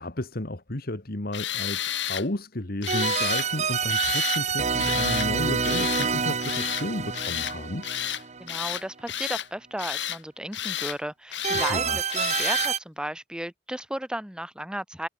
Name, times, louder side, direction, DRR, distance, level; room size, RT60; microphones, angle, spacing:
voice 1, 0.0-7.9 11.5-12.0, left 1 dB, 55° left, 1.8 m, -33 dB
Tools, 1.3-2.3 2.8-3.5 3.9-4.4 4.8-5.3 5.6-6.1 6.4-6.9 7.1-7.6 7.8-8.2 8.5-9.5 9.8-10.2 10.5-11.0 11.3-11.8 12.1-12.7, left 11 dB, 70° left, 3.2 m, -31 dB
sound 1, 2.9-8.8 11.4-12.8, right 5 dB, 40° right, 1.4 m, -27 dB
voice 2, 8.4-15.1, right 1 dB, 5° right, 1.6 m, -34 dB
head